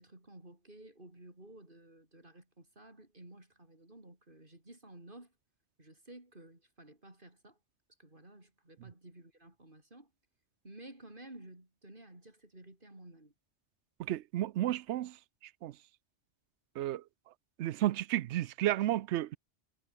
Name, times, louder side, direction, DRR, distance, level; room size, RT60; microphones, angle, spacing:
voice 1, 0.0-5.3 5.8-7.6 8.0-10.1 10.6-13.3, right 1 dB, 50° right, 5.9 m, -54 dB
voice 2, 14.0-15.1 15.6-15.7 16.8-17.0 17.6-19.4, right 13 dB, 80° right, 0.9 m, -32 dB
omnidirectional pair, 1.2 m